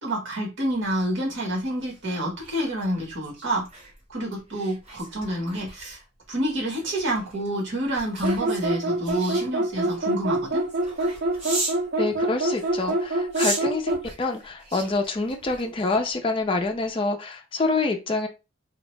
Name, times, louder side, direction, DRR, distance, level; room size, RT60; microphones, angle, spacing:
voice 1, 0.0-3.6 4.1-6.0 6.3-10.6, right 1 dB, 70° right, 1.4 m, -28 dB
sound 1, 0.7-11.9 12.5-16.1 16.5-16.8, right 2 dB, 30° right, 1.3 m, -38 dB
sound 2, 8.2-14.1, right 1 dB, 45° right, 0.5 m, -25 dB
voice 2, 12.0-18.3, left 3 dB, 25° left, 0.3 m, -26 dB
2.6 x 2.0 x 3.1 m
head